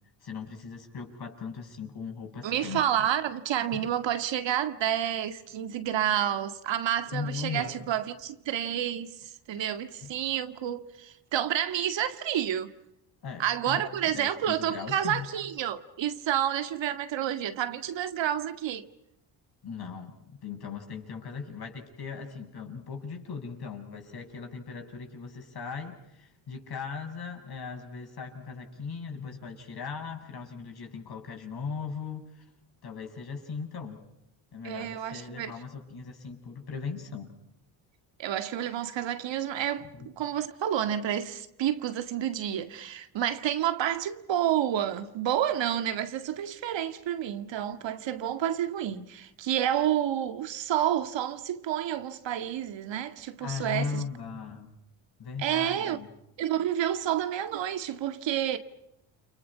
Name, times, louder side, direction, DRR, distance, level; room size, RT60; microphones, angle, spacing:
voice 1, 0.2-2.8 3.7-3.9 7.1-7.7 10.0-10.1 13.2-13.8 14.1-15.3 19.6-32.5 32.8-34.0 34.5-37.3 39.8-40.1 53.4-54.8 55.2-56.1, left 5 dB, 50° left, 7.1 m, -38 dB
voice 2, 2.4-12.7 13.4-18.9 34.6-35.5 38.2-54.0 55.4-56.0 56.4-58.6, right 10 dB, 65° right, 2.0 m, -29 dB
30.0 x 28.0 x 5.7 m
cardioid pair, 85°, 48 cm